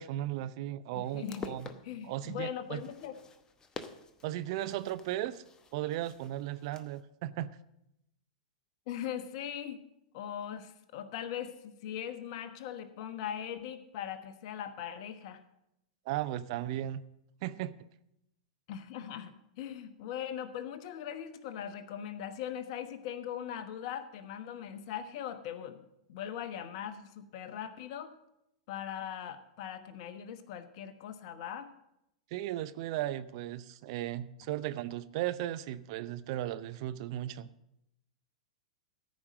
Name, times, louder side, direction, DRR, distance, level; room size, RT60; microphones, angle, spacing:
voice 1, 0.0-1.7 2.0-2.8 4.2-5.4 5.7-7.5 16.1-17.0 17.4-17.7 32.3-37.5, right 13 dB, 50° right, 14 dB, 0.6 m, -36 dB
voice 2, 0.9-1.6 1.8-3.2 8.9-9.8 10.1-15.4 18.7-25.8 26.1-28.1 28.7-31.7, left 9 dB, 50° left, 10 dB, 1.1 m, -40 dB
sound 1, 1.0-7.0, left 4 dB, 20° left, 0.9 m, -49 dB
14.0 x 5.3 x 7.5 m, 0.81 s
hypercardioid pair, 105°, 4 cm